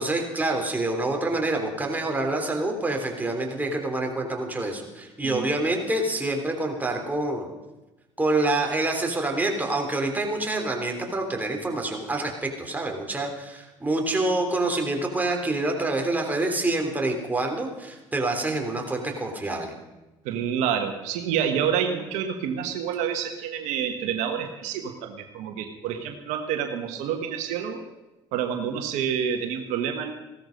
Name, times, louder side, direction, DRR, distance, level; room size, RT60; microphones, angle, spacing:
voice 1, 0.0-7.5 8.2-19.7, right 2 dB, 15° right, 2 dB, 3.4 m, -27 dB
voice 2, 20.2-27.8 28.3-30.1, right 8 dB, 80° right, 6 dB, 1.4 m, -28 dB
16.5 x 13.0 x 5.3 m, 1.1 s
supercardioid pair, 75°, 12 cm